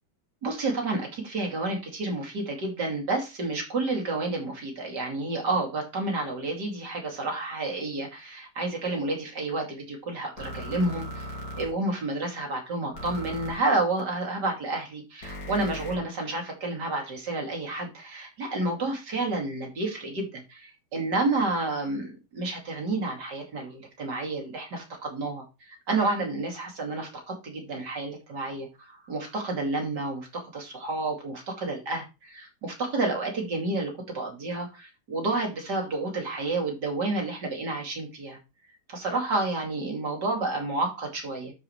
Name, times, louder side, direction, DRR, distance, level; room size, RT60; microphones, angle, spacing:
voice 1, 0.4-38.4 38.9-41.5, right 2 dB, 60° right, 3.2 m, -30 dB
sound 1, 10.4-11.7 12.9-13.5 15.2-16.0, equal, 85° left, 3.2 m, -37 dB
12.5 x 5.0 x 3.1 m
omnidirectional pair, 2.0 m